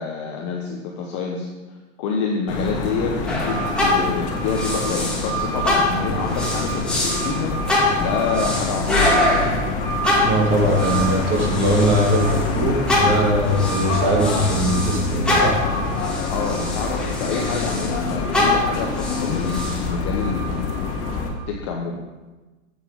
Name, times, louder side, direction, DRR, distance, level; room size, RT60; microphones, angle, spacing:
voice 1, 0.0-9.2 16.3-20.7 21.5-22.0, left 4 dB, 25° left, 0 dB, 0.4 m, -28 dB
sound 1, 2.5-21.3, left 2 dB, 45° left, 1.4 m, -25 dB
sound 2, 3.3-5.3 5.6-12.4 12.9-18.0 18.3-19.8, left 2 dB, ahead, 1.2 m, -25 dB
voice 2, 10.2-15.6, right 1 dB, 30° right, -1 dB, 1.6 m, -20 dB
7.9 x 5.3 x 4.7 m, 1.2 s
supercardioid pair, 155°, 41 cm